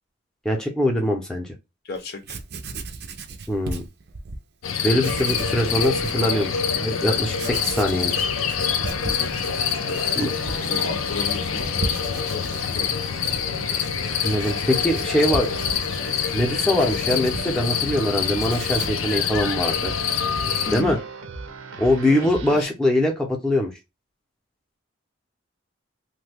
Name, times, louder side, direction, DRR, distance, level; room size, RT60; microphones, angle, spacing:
voice 1, 0.4-1.5 3.5-3.8 4.8-8.3 10.2-10.3 14.2-15.5 16.3-19.9 20.7-21.0 21.8-23.7, left 1 dB, 5° left, 0.6 m, -22 dB
voice 2, 1.8-2.4 7.4-7.8 9.0-9.3 9.8-10.1 10.4-11.8 12.1-13.0 20.7-21.0 22.0-22.7, left 3 dB, 50° left, 0.7 m, -34 dB
Writing, 1.9-4.4 5.0-6.2 6.7-6.8 7.3-18.0 18.3-19.1, right 3 dB, 55° right, 0.5 m, -36 dB
sound 1, 4.6-20.8, left 7 dB, 90° left, 0.5 m, -26 dB
sound 2, 5.1-22.6, right 4 dB, 90° right, 0.7 m, -39 dB
3.1 x 2.2 x 3.3 m
head